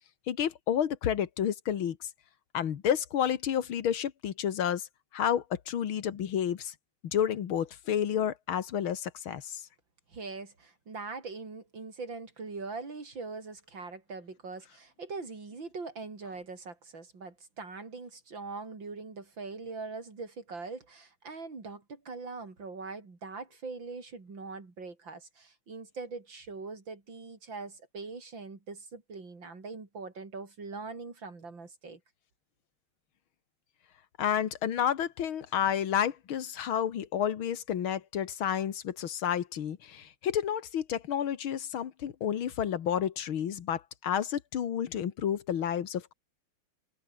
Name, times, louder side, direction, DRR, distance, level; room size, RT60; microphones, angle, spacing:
voice 1, 0.3-2.1 2.5-4.9 5.1-6.7 7.0-9.6 34.2-46.1, left 9 dB, 85° left, 2.3 m, -30 dB
voice 2, 10.1-32.0, right 4 dB, 65° right, 4.8 m, -42 dB
omnidirectional pair, 2.2 m